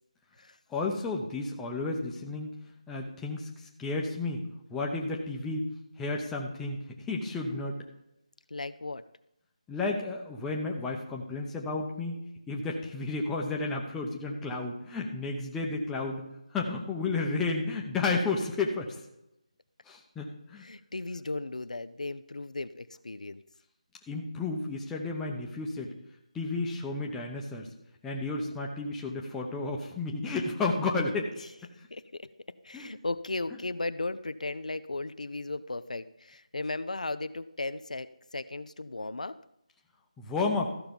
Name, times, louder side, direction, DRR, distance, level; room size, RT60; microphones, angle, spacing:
voice 1, 0.7-2.5 2.9-4.4 4.7-5.7 6.0-6.8 7.1-7.8 9.7-12.2 12.5-16.2 16.5-19.0 19.9-20.6 24.1-25.9 26.3-27.7 28.0-31.7 32.7-32.9 40.2-40.7, left 3 dB, 5° left, -1 dB, 0.8 m, -32 dB
voice 2, 8.5-9.0 20.6-23.4 31.9-32.3 32.6-39.4, left 2 dB, 80° left, 13 dB, 0.6 m, -36 dB
14.0 x 5.8 x 5.3 m, 0.84 s
figure-of-eight pair, 165°, 4 cm